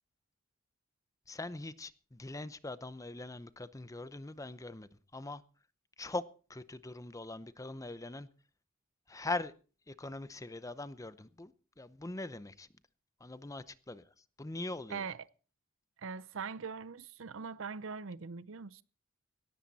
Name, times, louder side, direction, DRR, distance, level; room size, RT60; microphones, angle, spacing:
voice 1, 1.3-5.4 6.0-6.2 6.5-8.3 9.1-9.5 9.9-12.7 13.2-14.1 14.4-15.1, left 2 dB, 15° left, 0.7 m, -42 dB
voice 2, 16.0-18.8, right 5 dB, 70° right, 0.7 m, -41 dB
17.5 x 13.5 x 4.1 m
head